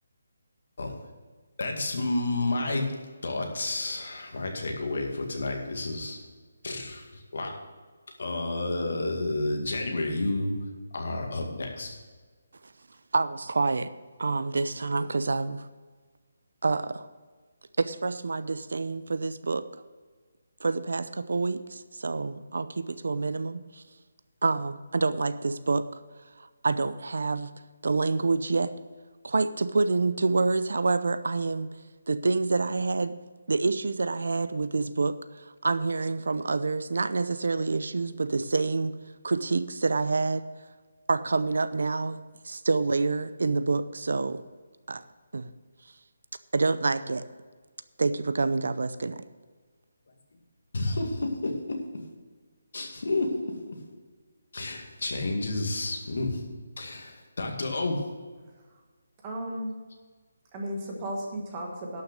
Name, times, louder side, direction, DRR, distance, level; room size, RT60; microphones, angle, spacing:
voice 1, 1.6-2.9 3.2-6.2 6.6-7.5 8.2-10.6 10.9-12.0 50.7-52.0 52.7-53.8 54.5-56.4 56.8-58.0, left 2 dB, 55° left, 2 dB, 2.1 m, -30 dB
voice 2, 13.1-13.9 14.2-15.7 16.6-17.1 17.8-19.7 20.6-23.8 24.4-26.0 26.4-27.5 27.8-28.7 29.2-31.7 32.1-33.1 33.5-39.0 39.2-40.5 41.1-42.2 42.4-44.4 44.9-45.0 45.3-45.5 46.5-47.3 48.0-49.2, right 3 dB, 70° right, 13 dB, 0.6 m, -27 dB
voice 3, 59.2-59.7 60.5-62.0, right 1 dB, 15° right, -1 dB, 1.4 m, -34 dB
11.5 x 6.5 x 6.4 m, 1.4 s
hypercardioid pair, 180°, 0 cm